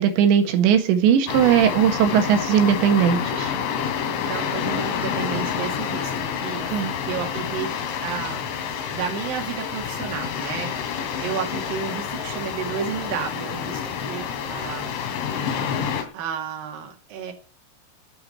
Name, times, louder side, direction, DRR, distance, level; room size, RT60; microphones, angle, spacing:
voice 1, 0.0-3.5 6.7-6.9, right 8 dB, 70° right, 3.7 m, -19 dB
sound 1, 1.3-16.0, left 7 dB, 75° left, 5.0 m, -28 dB
voice 2, 4.2-7.7 8.0-8.4 8.9-15.0 16.1-17.3, right 7 dB, 55° right, 3.6 m, -32 dB
9.6 x 8.5 x 9.8 m
omnidirectional pair, 5.7 m